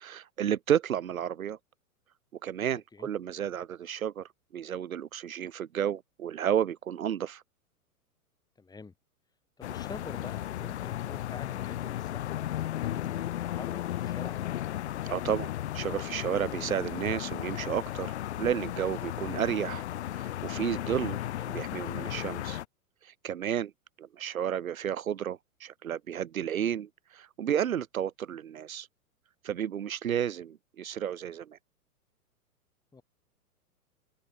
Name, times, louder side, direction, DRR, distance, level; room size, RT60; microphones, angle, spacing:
voice 1, 0.0-1.6 2.4-7.4 15.0-18.1 18.4-19.8 20.1-22.6 23.0-23.7 24.0-28.9 29.4-31.6, right 9 dB, 65° right, 1.1 m, -32 dB
voice 2, 8.6-8.9 9.6-14.5 32.9-33.0, left 4 dB, 10° left, 6.3 m, -47 dB
sound 1, 9.6-22.6, left 13 dB, 45° left, 0.7 m, -35 dB
open air
figure-of-eight pair, 110°, 45 cm